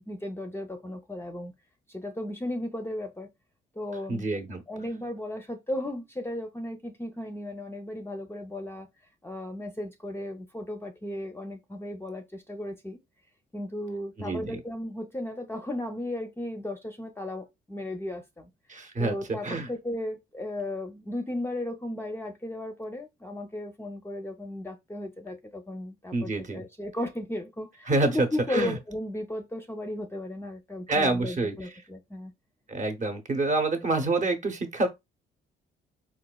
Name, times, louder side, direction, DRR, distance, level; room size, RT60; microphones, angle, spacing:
voice 1, 0.0-1.5 1.9-3.3 3.8-4.3 4.7-8.9 9.2-13.0 13.5-18.5 19.0-32.3, left 1 dB, 10° left, 0.5 m, -35 dB
voice 2, 4.1-4.6 14.2-14.6 18.7-19.7 26.1-26.6 27.9-28.8 30.9-31.7 32.7-34.9, right 2 dB, 40° right, 0.8 m, -27 dB
4.0 x 2.4 x 2.2 m
cardioid pair, 90°, 20 cm